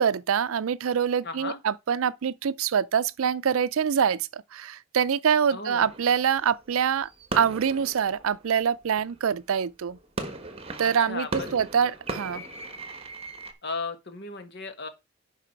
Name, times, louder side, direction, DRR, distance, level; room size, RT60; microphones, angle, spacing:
voice 1, 0.0-10.0 10.8-12.4, right 7 dB, 80° right, 0.4 m, -25 dB
voice 2, 1.2-1.6 5.5-5.9 10.8-11.5 13.6-14.9, left 3 dB, 50° left, 1.6 m, -35 dB
sound 1, 5.8-9.4 9.9-13.5, right 2 dB, 30° right, 1.4 m, -38 dB
11.0 x 4.8 x 4.5 m
head